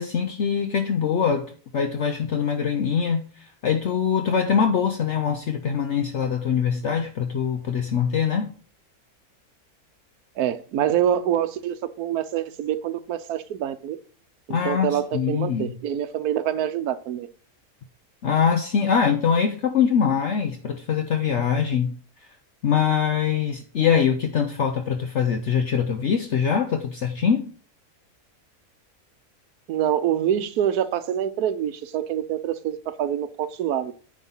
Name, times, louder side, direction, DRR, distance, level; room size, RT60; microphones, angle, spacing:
voice 1, 0.0-1.5 1.7-8.5 14.5-15.7 18.2-21.9 22.6-27.5, left 7 dB, 60° left, 0.9 m, -23 dB
voice 2, 10.4-14.0 14.5-17.3 29.7-33.9, right 10 dB, 85° right, 1.2 m, -26 dB
9.4 x 3.7 x 5.5 m
omnidirectional pair, 1.6 m